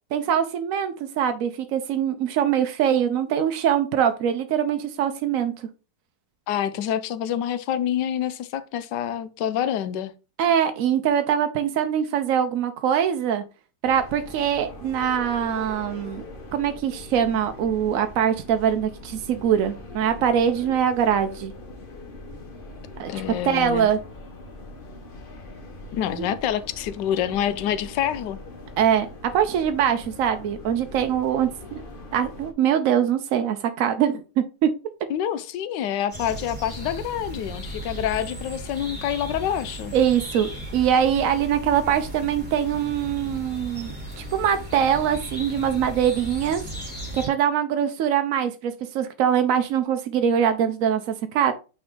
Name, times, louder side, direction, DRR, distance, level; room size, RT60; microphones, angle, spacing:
voice 1, 0.1-5.7 10.4-13.4 13.8-16.2 16.5-21.5 23.0-23.1 23.4-24.0 26.2-26.3 28.8-31.8 32.1-34.7 39.9-46.6 47.1-51.5, right 9 dB, 70° right, 0.8 m, -23 dB
voice 2, 6.5-10.1 23.1-23.9 25.9-28.4 35.1-39.9, left 10 dB, 75° left, 1.2 m, -27 dB
sound 1, 13.8-32.5, left 2 dB, 35° left, 1.0 m, -41 dB
sound 2, 36.1-47.3, equal, 5° left, 2.7 m, -36 dB
8.6 x 3.4 x 3.7 m
omnidirectional pair, 2.0 m